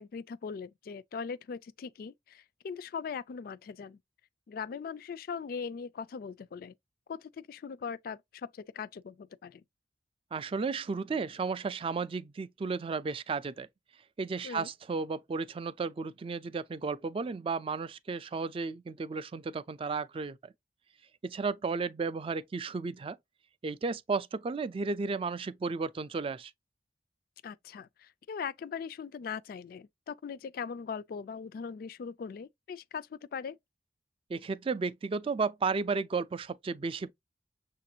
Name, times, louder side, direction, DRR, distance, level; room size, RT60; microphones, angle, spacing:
voice 1, 0.0-4.0 4.5-6.7 7.1-9.6 14.4-14.7 27.4-33.6, left 6 dB, 55° left, 0.3 m, -40 dB
voice 2, 10.3-13.7 14.2-20.5 21.2-23.2 23.6-26.5 34.3-37.1, right 4 dB, 30° right, 0.3 m, -33 dB
6.5 x 2.5 x 2.7 m
head